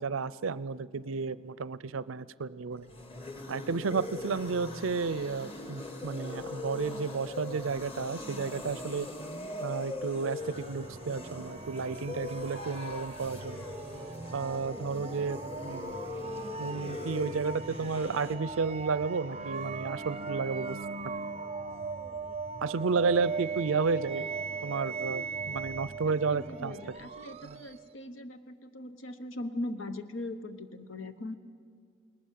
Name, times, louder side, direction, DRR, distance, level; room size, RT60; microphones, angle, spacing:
voice 1, 0.0-2.9 3.5-9.1 9.6-13.6 14.3-15.4 15.6-16.0 16.6-20.8 22.6-24.3 24.6-26.7 27.4-27.6, right 4 dB, 85° right, 18 dB, 0.6 m, -32 dB
sound 1, 2.7-18.4, left 2 dB, 30° left, 1.8 m, -41 dB
sound 2, 10.4-27.9, right 4 dB, 30° right, 0.6 m, -39 dB
voice 2, 26.1-31.4, left 1 dB, 75° left, 10 dB, 1.1 m, -40 dB
28.5 x 20.0 x 7.6 m, 2.1 s
head